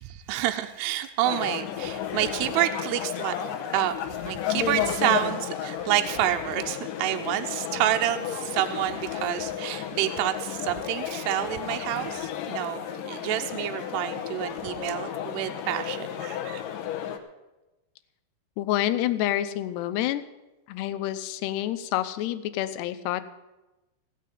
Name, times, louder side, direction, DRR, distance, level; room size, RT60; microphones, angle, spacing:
voice 1, 0.0-3.4 3.7-3.9 4.3-16.6, right 13 dB, 85° right, 6 dB, 2.7 m, -28 dB
sound 1, 1.2-17.2, left 9 dB, 70° left, 2.2 m, -33 dB
voice 2, 18.6-20.2 20.7-23.2, left 13 dB, 85° left, 11 dB, 2.8 m, -28 dB
16.0 x 6.6 x 9.2 m, 1.0 s
omnidirectional pair, 4.7 m